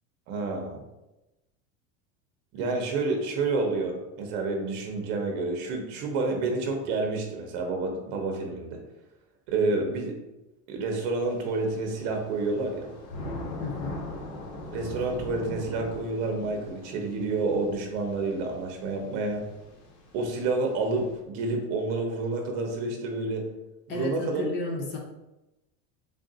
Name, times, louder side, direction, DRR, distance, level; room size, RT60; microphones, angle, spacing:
voice 1, 0.3-0.8 2.5-8.8 9.5-10.2 10.7-12.9 14.7-19.4 20.1-23.4 23.9-24.5, right 3 dB, 55° right, 2 dB, 0.8 m, -29 dB
Thunder / Rain, 11.2-21.2, left 1 dB, 80° left, 1.1 m, -41 dB
voice 2, 13.6-14.1 23.9-25.0, left 3 dB, 35° left, 0 dB, 0.6 m, -33 dB
3.5 x 2.5 x 3.9 m, 0.97 s
cardioid pair, 175°, 33 cm